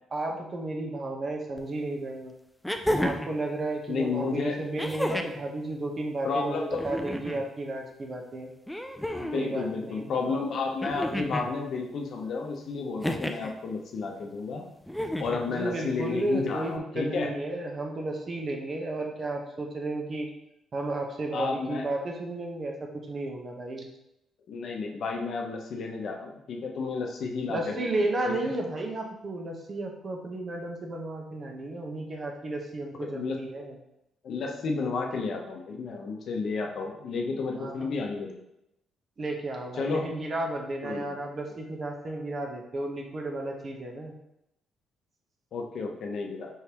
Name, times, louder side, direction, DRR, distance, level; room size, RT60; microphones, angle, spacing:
voice 1, 0.1-2.4 3.0-8.5 9.3-10.1 15.5-20.3 20.7-23.9 27.5-33.8 37.6-37.9 39.2-44.1, right 2 dB, 40° right, 1 dB, 0.9 m, -33 dB
sound 1, 1.6-1.7 2.6-3.4 4.8-5.4 6.7-7.4 8.7-9.5 10.8-11.5 13.0-13.5 14.9-15.5 16.8-16.9, equal, 5° left, 0.4 m, -31 dB
voice 2, 3.9-4.6 6.2-6.9 9.2-14.7 15.2-17.3 21.3-21.8 24.5-27.7 28.3-28.4 33.0-33.4 34.2-38.4 39.8-40.1 40.8-41.2 45.5-46.5, left 4 dB, 65° left, 2 dB, 0.7 m, -31 dB
4.7 x 3.4 x 2.9 m, 0.83 s
cardioid pair, 90°, 0 cm